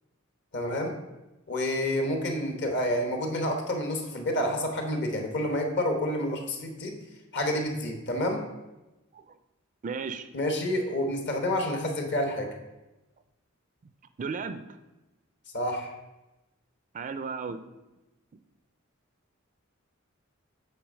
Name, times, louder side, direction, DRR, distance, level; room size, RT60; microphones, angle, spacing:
voice 1, 0.5-0.9 1.5-7.0 7.3-8.4 10.3-12.5 15.5-15.9, left 1 dB, 55° left, 3 dB, 1.2 m, -29 dB
voice 2, 9.8-10.3 14.2-14.6 16.9-17.6, right 5 dB, 35° right, 11 dB, 0.4 m, -34 dB
7.9 x 3.4 x 6.3 m, 1.0 s
head